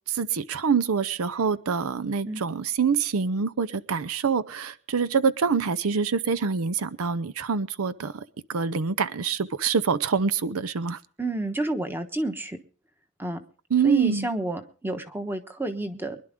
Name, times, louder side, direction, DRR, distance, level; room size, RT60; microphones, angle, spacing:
voice 1, 0.1-8.2 8.5-11.0 13.7-14.3, right 5 dB, 85° right, 15 dB, 0.6 m, -25 dB
voice 2, 11.2-12.6 13.2-13.4 13.8-16.2, right 2 dB, 10° right, 7 dB, 1.2 m, -30 dB
24.0 x 11.0 x 3.7 m, 0.40 s
head